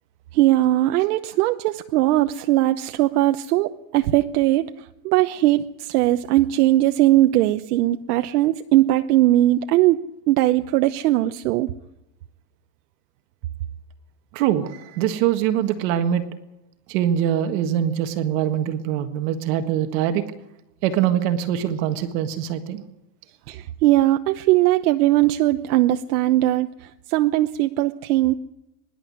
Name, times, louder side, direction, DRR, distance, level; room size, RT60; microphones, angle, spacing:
voice 1, 0.3-4.7 5.0-11.7 23.5-28.3, right 15 dB, 80° right, 8 dB, 1.0 m, -19 dB
voice 2, 14.3-16.2 16.9-20.2 20.8-22.8, right 10 dB, 55° right, 7 dB, 1.7 m, -23 dB
24.5 x 11.5 x 9.6 m, 0.91 s
supercardioid pair, 160°, 45 cm